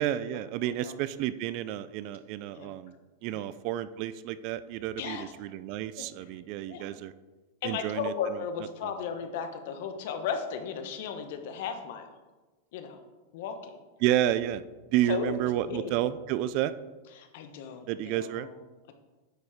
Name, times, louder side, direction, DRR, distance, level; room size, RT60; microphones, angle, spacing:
voice 1, 0.0-2.9 3.2-7.1 7.6-8.1 14.0-14.6 14.9-16.7 17.9-18.5, right 12 dB, 45° right, 14 dB, 0.4 m, -30 dB
voice 2, 5.0-5.3 5.9-6.1 6.3-6.4 6.7-6.9 7.6-12.1 12.7-13.0 13.3-13.8 15.1-15.3 15.7-16.0 17.1-18.9, left 7 dB, 60° left, 7 dB, 1.1 m, -36 dB
9.4 x 4.5 x 4.9 m, 1.2 s
supercardioid pair, 160°, 0 cm